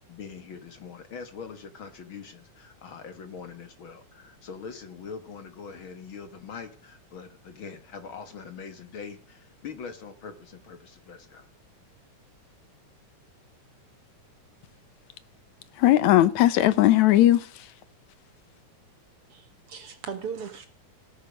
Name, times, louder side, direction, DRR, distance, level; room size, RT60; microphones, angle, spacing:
voice 1, 0.1-11.5, left 6 dB, 50° left, 1.8 m, -42 dB
voice 2, 15.7-17.7, left 14 dB, 70° left, 2.1 m, -19 dB
voice 3, 19.3-20.7, right 6 dB, 55° right, 2.0 m, -37 dB
18.5 x 9.9 x 5.3 m
omnidirectional pair, 3.6 m